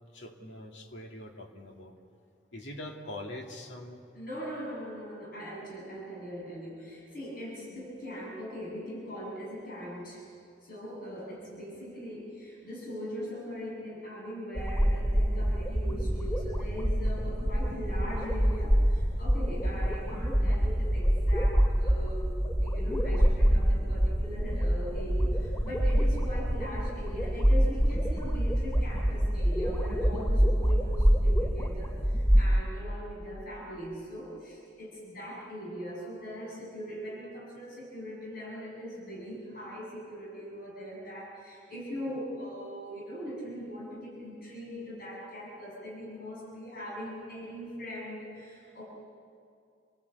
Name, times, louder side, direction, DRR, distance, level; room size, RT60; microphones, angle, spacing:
voice 1, 0.1-1.9 2.5-4.0, left 1 dB, 70° left, 2 dB, 2.5 m, -43 dB
voice 2, 4.1-10.3 10.6-22.3 22.6-48.8, equal, 55° left, -4 dB, 7.3 m, -41 dB
sound 1, 14.5-32.5, equal, 15° left, 2.5 m, -26 dB
28.5 x 19.0 x 8.4 m, 2.4 s
head